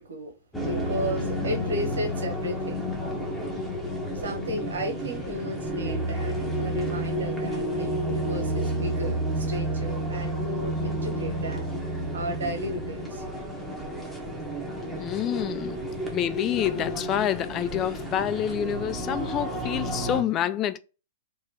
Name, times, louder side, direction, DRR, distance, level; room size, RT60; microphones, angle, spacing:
voice 1, 0.0-2.9 4.1-11.7 12.1-13.2 15.1-15.4, right 1 dB, 85° right, 1.1 m, -34 dB
sound 1, 0.5-20.2, equal, 10° left, 0.9 m, -31 dB
voice 2, 15.0-15.8 16.1-20.8, left 10 dB, 30° left, 0.3 m, -27 dB
3.0 x 2.2 x 3.6 m
hypercardioid pair, 120°, 0 cm